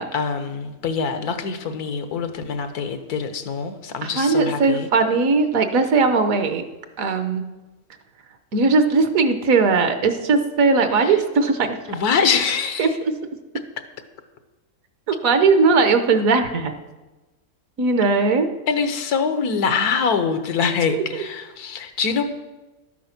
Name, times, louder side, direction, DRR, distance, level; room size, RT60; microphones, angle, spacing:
voice 1, 0.1-4.9 11.0-11.2 11.9-12.9 18.7-22.2, left 5 dB, 90° left, 9 dB, 1.5 m, -24 dB
voice 2, 4.0-6.6 7.0-7.4 8.5-11.8 12.8-13.1 15.1-16.7 17.8-18.5 20.9-21.0, right 4 dB, 65° right, 8 dB, 1.4 m, -19 dB
12.0 x 9.3 x 5.9 m, 1.1 s
omnidirectional pair, 1.6 m